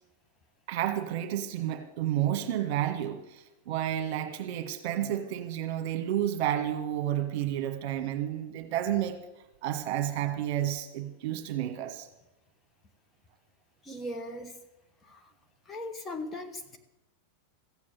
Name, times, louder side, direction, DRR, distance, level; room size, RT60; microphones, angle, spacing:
voice 1, 0.7-9.2 9.6-12.1, right 11 dB, 45° right, 7 dB, 1.5 m, -31 dB
voice 2, 13.8-14.6 15.1-15.2 15.7-16.8, left 1 dB, 15° left, 5 dB, 1.3 m, -38 dB
14.5 x 8.4 x 7.5 m, 0.93 s
figure-of-eight pair, 90°, 0 cm